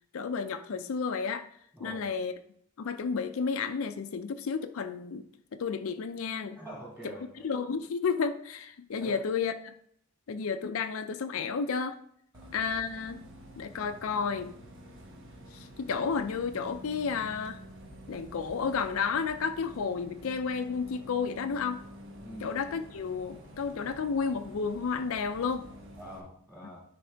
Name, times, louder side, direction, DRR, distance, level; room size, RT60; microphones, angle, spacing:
voice 1, 0.1-1.5 1.8-2.3 2.8-5.3 5.6-6.6 7.4-9.7 10.3-12.0 12.5-13.2 13.6-14.5 15.5-17.6 18.1-21.8 22.4-25.7, left 5 dB, 75° left, 9 dB, 0.4 m, -32 dB
voice 2, 1.7-2.1 6.6-7.4 9.0-9.2 12.3-12.5 22.2-22.5 26.0-26.8, equal, 10° right, -5 dB, 2.4 m, -45 dB
Bus, 12.3-26.2, equal, 60° right, 1.1 m, -49 dB
10.0 x 3.5 x 3.4 m, 0.66 s
head